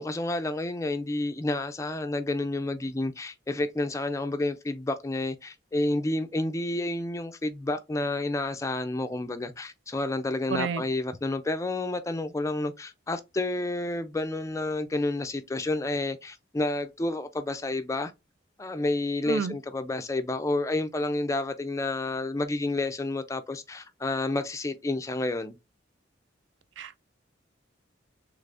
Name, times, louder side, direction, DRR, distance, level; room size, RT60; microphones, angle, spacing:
voice 1, 0.0-18.1 18.6-25.6, left 2 dB, 15° left, 0.3 m, -30 dB
voice 2, 10.5-10.8 19.3-19.5 26.8-27.0, right 5 dB, 75° right, 0.4 m, -30 dB
3.3 x 3.3 x 2.5 m
head